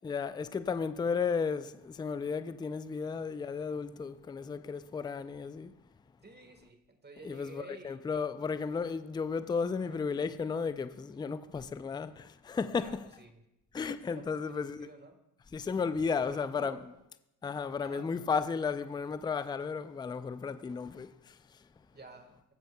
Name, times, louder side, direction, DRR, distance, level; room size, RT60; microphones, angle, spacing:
voice 1, 0.0-5.7 7.2-13.1 13.7-14.9 15.5-16.8 17.4-21.3, left 5 dB, 10° left, 0.4 m, -34 dB
voice 2, 6.2-8.0 9.8-10.0 12.8-13.4 14.1-15.2 16.1-16.8 17.8-18.1 21.9-22.3, right 3 dB, 20° right, 1.5 m, -50 dB
19.5 x 7.7 x 2.3 m
hypercardioid pair, 65°, 45 cm